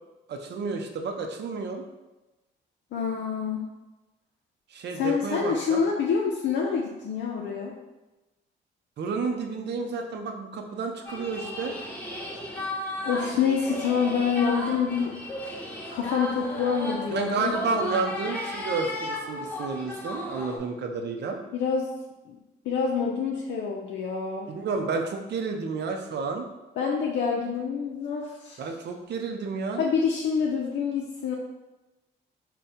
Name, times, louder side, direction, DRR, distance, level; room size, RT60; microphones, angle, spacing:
voice 1, 0.3-1.8 4.7-5.8 9.0-11.7 17.1-21.4 24.5-26.5 28.6-29.9, right 4 dB, 60° right, 4 dB, 0.6 m, -31 dB
voice 2, 2.9-3.7 4.9-7.7 13.0-15.2 15.9-18.0 21.5-21.9 22.3-22.4 22.6-24.5 26.8-28.6 29.8-31.3, left 6 dB, 70° left, -2 dB, 0.5 m, -27 dB
sound 1, 11.1-20.6, left 1 dB, 5° left, 0.9 m, -35 dB
3.6 x 2.2 x 4.2 m, 1.1 s
cardioid pair, 90°, 20 cm